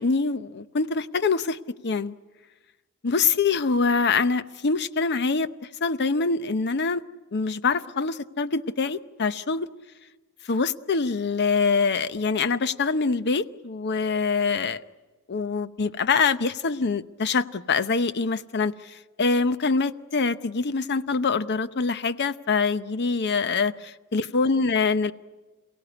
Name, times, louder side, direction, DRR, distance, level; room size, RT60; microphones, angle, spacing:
voice 1, 0.0-1.6 1.8-2.1 3.0-5.5 5.8-7.0 7.3-9.7 10.5-14.8 15.3-18.7 19.2-25.1, left 4 dB, 50° left, 13 dB, 0.8 m, -24 dB
28.0 x 17.0 x 9.7 m, 1.3 s
head